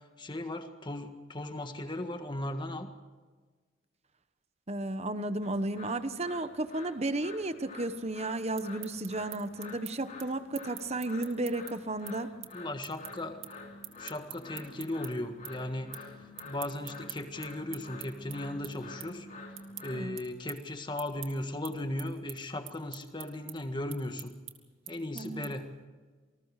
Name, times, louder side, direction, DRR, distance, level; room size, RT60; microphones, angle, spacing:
voice 1, 0.2-2.9 12.5-13.4 14.0-16.1 16.4-19.3 19.8-24.3 24.9-25.7, left 1 dB, 25° left, 7 dB, 1.7 m, -37 dB
voice 2, 4.7-12.3 19.9-20.2 25.1-25.5, right 2 dB, 30° right, 11 dB, 1.1 m, -33 dB
sound 1, 5.4-20.0, left 3 dB, 40° left, 3.5 m, -49 dB
sound 2, 8.4-15.1 15.4-16.1 16.3-25.7, right 14 dB, 75° right, 2.6 m, -46 dB
27.5 x 20.0 x 4.9 m, 1.4 s
head